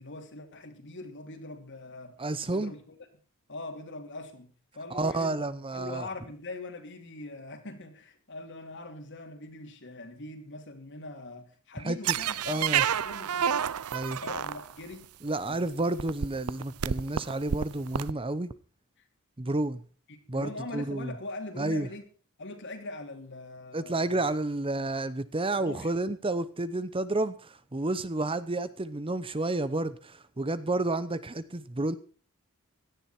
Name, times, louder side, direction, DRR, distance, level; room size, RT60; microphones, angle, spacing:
voice 1, 0.0-2.2 2.5-3.0 3.5-5.4 5.7-13.6 14.1-15.1 15.4-15.6 20.1-22.0 22.4-24.2 25.6-25.9, left 2 dB, 55° left, 3.1 m, -42 dB
voice 2, 2.2-2.7 4.9-6.1 11.8-12.0 12.5-12.8 13.9-14.2 15.2-18.5 19.4-19.8 20.3-21.1 21.6-21.9 23.7-32.0, right 2 dB, 25° right, 0.8 m, -30 dB
sound 1, 12.0-14.9 15.7-15.8 16.0-18.1, right 8 dB, 80° right, 0.6 m, -29 dB
17.0 x 12.5 x 4.5 m
head